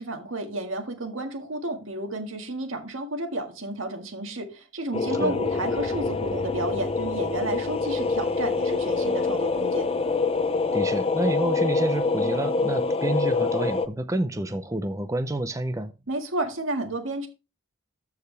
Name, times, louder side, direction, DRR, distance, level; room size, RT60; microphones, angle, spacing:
voice 1, 0.0-9.9 16.1-17.3, right 1 dB, 80° right, 1.8 m, -32 dB
sound 1, 4.9-13.9, left 4 dB, 30° left, 0.6 m, -25 dB
voice 2, 10.7-15.9, right 1 dB, 15° right, 0.5 m, -28 dB
13.5 x 4.8 x 3.3 m
head